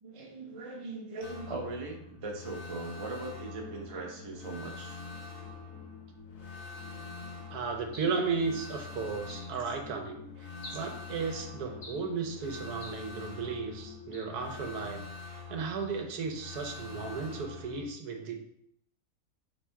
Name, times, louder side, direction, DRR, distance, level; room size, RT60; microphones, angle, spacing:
voice 1, 0.0-5.0 6.9-7.3 10.7-10.8, right 3 dB, 30° right, 0 dB, 0.6 m, -40 dB
sound 1, 1.2-17.9, left 4 dB, 60° left, 1.4 m, -45 dB
sound 2, 3.0-14.8, left 5 dB, 75° left, 1.2 m, -52 dB
voice 2, 7.5-10.2 10.7-18.4, right 5 dB, 85° right, 3 dB, 1.3 m, -35 dB
sound 3, 7.9-8.3 9.3-9.6 10.6-11.0 11.8-12.1 12.8-13.1 14.1-14.4, left 1 dB, 40° left, 0.9 m, -47 dB
3.5 x 3.3 x 4.4 m, 0.72 s
omnidirectional pair, 1.6 m